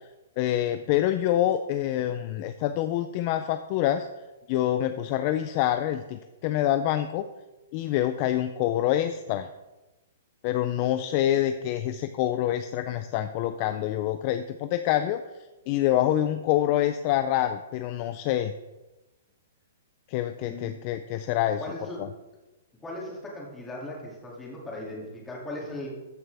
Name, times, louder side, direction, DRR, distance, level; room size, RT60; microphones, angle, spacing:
voice 1, 0.4-4.1 4.5-7.2 7.7-9.5 10.4-15.2 15.7-18.5 20.1-21.6 22.0-22.1, left 12 dB, 30° left, 9 dB, 0.4 m, -26 dB
voice 2, 21.6-22.0 22.8-25.9, left 1 dB, 10° left, -3 dB, 2.4 m, -38 dB
14.0 x 7.6 x 3.4 m, 1.1 s
hypercardioid pair, 165°, 0 cm